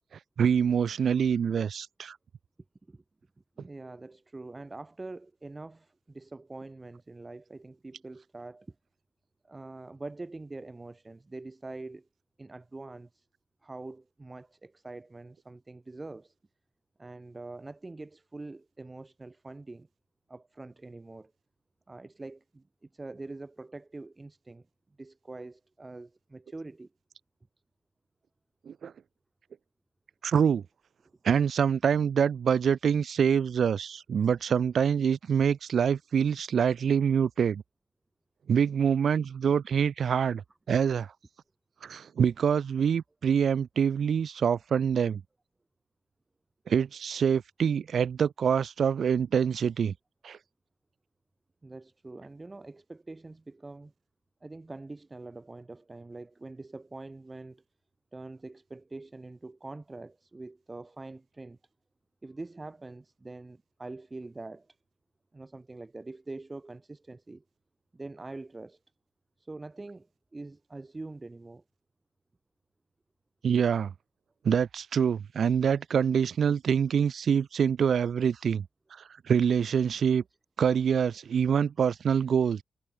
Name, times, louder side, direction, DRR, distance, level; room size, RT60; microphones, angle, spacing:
voice 1, 0.4-2.2 28.7-28.9 30.2-30.6 31.2-37.6 38.5-40.4 40.7-41.1 41.8-45.2 46.7-49.9 50.2-50.4 73.4-73.9 74.4-78.7 79.3-80.2 80.6-82.6, right 7 dB, 65° right, 0.4 m, -25 dB
voice 2, 3.6-8.7 9.4-12.1 12.4-13.3 13.6-16.3 17.0-19.9 20.3-21.3 21.9-24.7 25.0-26.9 51.6-53.9 54.4-57.6 58.1-61.6 62.2-64.8 65.3-67.4 67.9-68.8 69.4-70.1 70.3-71.6, right 2 dB, 25° right, 2.7 m, -44 dB
cardioid pair, 105°, 0 cm